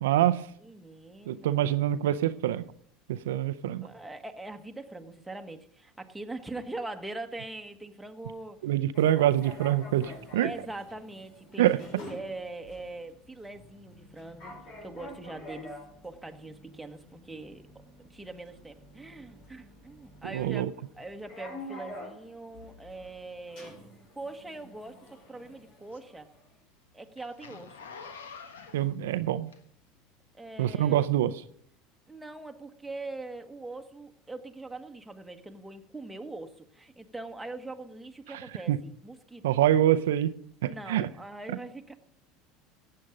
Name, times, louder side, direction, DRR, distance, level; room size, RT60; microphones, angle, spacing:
voice 1, 0.0-0.4 1.3-2.6 3.1-3.9 8.6-10.5 11.6-11.8 20.3-20.7 28.7-29.5 30.6-31.4 38.7-38.8 39.4-40.3 40.6-41.1, right 12 dB, 80° right, 12 dB, 0.5 m, -25 dB
voice 2, 0.6-1.8 3.8-8.6 10.4-14.5 14.8-15.8 16.0-17.8 18.1-23.8 24.1-25.0 25.3-26.3 26.9-27.9 30.4-31.1 32.1-39.6 40.6-41.9, right 2 dB, 5° right, 4 dB, 1.4 m, -42 dB
sound 1, 8.9-26.5, left 1 dB, 60° left, 4.4 m, -48 dB
Zipper (clothing), 25.1-30.0 30.6-30.7, left 5 dB, 90° left, 1.3 m, -47 dB
14.5 x 8.6 x 5.1 m, 0.64 s
hypercardioid pair, 85°, 0 cm